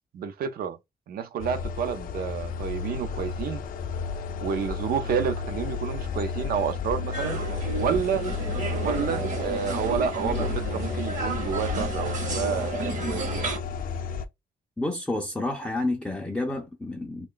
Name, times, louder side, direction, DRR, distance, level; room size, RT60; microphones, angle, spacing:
voice 1, 0.1-0.8 1.1-3.6 4.4-7.4 7.8-8.2 8.8-13.2, right 7 dB, 65° right, 0.6 m, -29 dB
sound 1, 1.4-14.3, left 5 dB, 60° left, 0.5 m, -32 dB
sound 2, 7.1-13.6, right 3 dB, 50° right, 1.0 m, -32 dB
voice 2, 14.8-17.3, left 2 dB, 5° left, 0.4 m, -29 dB
3.0 x 2.3 x 3.8 m
wide cardioid pair, 170°, 16 cm